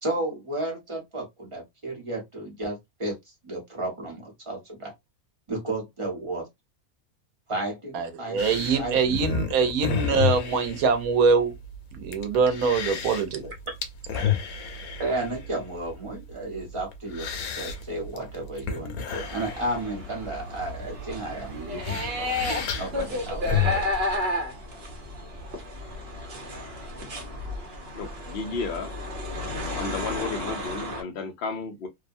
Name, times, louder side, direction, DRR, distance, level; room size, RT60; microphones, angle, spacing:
voice 1, 0.0-3.1 3.4-4.9 5.5-6.5 7.5-9.2 15.0-17.3 17.6-22.3 22.7-23.5, right 2 dB, 25° right, 0.9 m, -33 dB
voice 2, 7.9-11.5 11.9-13.4, right 5 dB, 80° right, 1.1 m, -23 dB
sound 1, 8.4-24.0, left 7 dB, 85° left, 1.1 m, -32 dB
sound 2, 19.1-31.0, left 1 dB, 50° right, 1.0 m, -32 dB
voice 3, 27.9-28.9 29.8-31.9, left 4 dB, 55° left, 0.7 m, -33 dB
2.7 x 2.2 x 2.5 m
omnidirectional pair, 1.5 m